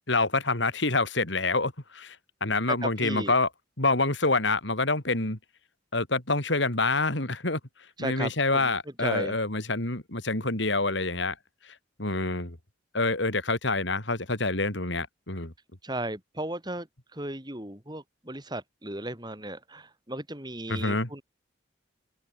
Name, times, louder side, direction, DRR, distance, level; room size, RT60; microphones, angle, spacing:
voice 1, 0.1-2.2 2.4-3.5 3.8-5.4 5.9-7.6 8.0-11.4 12.0-12.6 12.9-15.5 20.7-21.1, left 3 dB, 65° left, 3.6 m, -27 dB
voice 2, 2.7-3.3 8.0-8.7 9.0-9.3 15.8-16.9 17.1-21.2, right 1 dB, 20° right, 5.2 m, -35 dB
open air
head